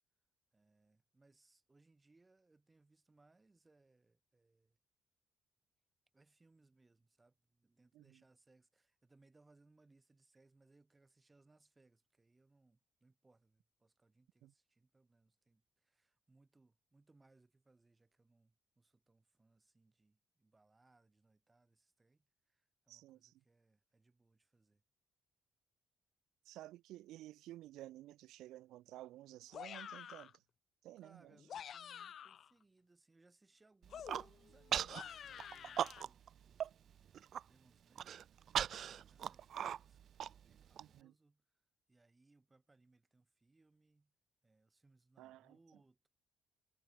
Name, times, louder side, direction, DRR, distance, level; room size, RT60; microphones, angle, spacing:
voice 1, 0.5-4.8 6.1-24.8 31.0-38.3 38.8-40.0 40.3-41.4 41.9-44.1 44.4-46.1, right 3 dB, 20° right, 4.8 m, -71 dB
voice 2, 22.9-23.4 26.5-30.4 30.8-31.4 40.8-41.1 45.2-45.6, right 15 dB, 90° right, 0.8 m, -54 dB
sound 1, 29.5-30.4 31.3-32.5 33.9-36.0, left 9 dB, 60° left, 0.7 m, -50 dB
Human voice, 33.8-34.3 34.7-35.0 35.4-36.3 36.6-36.7 37.1-37.4 38.0-40.8, right 9 dB, 65° right, 0.3 m, -38 dB
cardioid pair, 90°, 0 cm